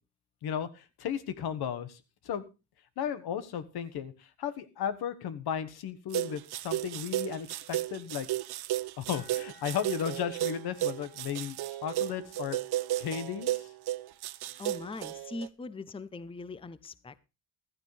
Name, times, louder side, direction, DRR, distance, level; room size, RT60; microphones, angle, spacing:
voice 1, 0.4-2.0 2.2-2.4 3.0-8.3 9.0-12.6 13.0-13.7, left 8 dB, 75° left, 1.4 m, -35 dB
sound 1, 6.1-15.5, right 14 dB, 80° right, 0.8 m, -34 dB
sound 2, 9.1-14.7, right 1 dB, 55° left, 5.9 m, -59 dB
voice 2, 14.6-17.2, left 3 dB, 15° left, 0.7 m, -41 dB
15.5 x 12.5 x 3.3 m
cardioid pair, 100°, 38 cm